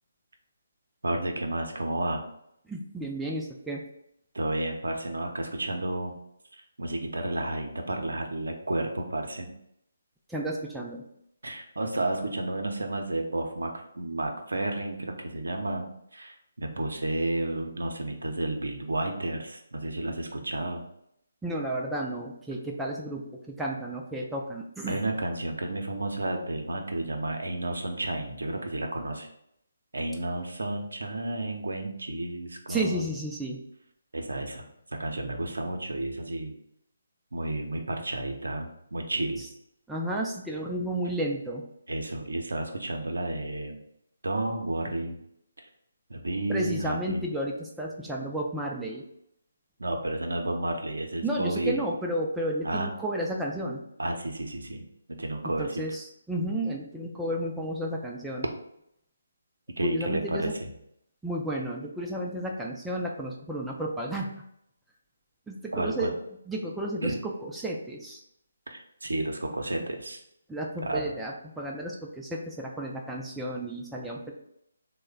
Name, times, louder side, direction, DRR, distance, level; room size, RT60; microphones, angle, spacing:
voice 1, 1.0-2.2 4.3-6.1 6.5-9.5 11.4-20.8 24.9-29.3 29.9-33.1 34.1-36.5 37.3-39.5 41.9-43.8 44.2-45.2 46.1-47.2 49.8-51.8 52.6-52.9 54.0-55.9 59.8-60.7 65.7-66.1 67.0-67.2 68.7-70.2 70.8-71.0, right 2 dB, 75° right, 3 dB, 0.6 m, -31 dB
voice 2, 2.7-3.9 10.3-11.0 21.4-25.0 32.7-33.6 39.4-39.5 39.9-41.6 46.5-49.0 51.2-53.8 55.6-58.5 59.8-60.5 61.2-64.3 65.5-66.2 66.5-68.2 70.5-74.3, right 1 dB, 5° right, -2 dB, 0.3 m, -32 dB
3.0 x 2.1 x 3.5 m, 0.75 s
figure-of-eight pair, 145°, 0 cm